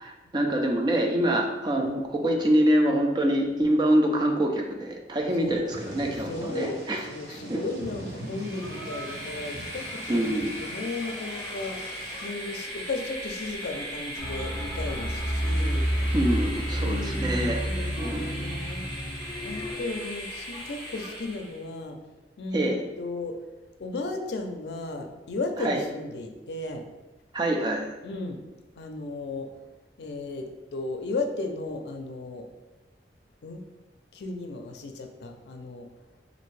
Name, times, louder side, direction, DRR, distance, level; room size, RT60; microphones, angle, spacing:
voice 1, 0.0-7.0 7.5-7.6 10.1-10.5 16.1-17.6 18.0-18.4 22.5-22.8 25.6-25.8 27.3-27.9, right 1 dB, 25° right, 1 dB, 0.4 m, -25 dB
Thunder / Rain, 5.6-12.3, right 1 dB, 70° right, 0.9 m, -42 dB
voice 2, 6.3-11.8 12.2-15.9 16.8-18.9 19.4-22.0 22.4-23.4 23.8-26.8 28.0-28.4 28.8-29.5 30.0-32.5 33.4-33.6 34.1-35.9, left 2 dB, 70° left, 4 dB, 0.4 m, -35 dB
Train, 8.2-21.7, equal, 45° right, 0.9 m, -38 dB
sound 1, 14.2-19.7, equal, 5° right, 0.8 m, -29 dB
3.3 x 2.6 x 3.1 m, 1.1 s
head